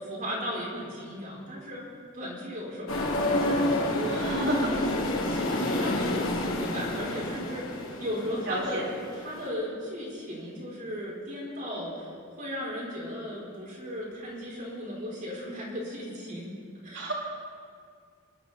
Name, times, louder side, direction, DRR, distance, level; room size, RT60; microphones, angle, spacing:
voice 1, 0.0-1.8 2.1-8.9 9.1-12.1 12.4-16.5 16.8-17.1, equal, 40° right, -5 dB, 4.8 m, -36 dB
sound 1, 2.9-9.5, left 1 dB, 85° left, 2.7 m, -29 dB
voice 2, 4.1-4.7 8.5-8.8 16.9-17.1, right 1 dB, 60° right, -3 dB, 4.0 m, -30 dB
27.0 x 12.5 x 4.4 m, 2.2 s
head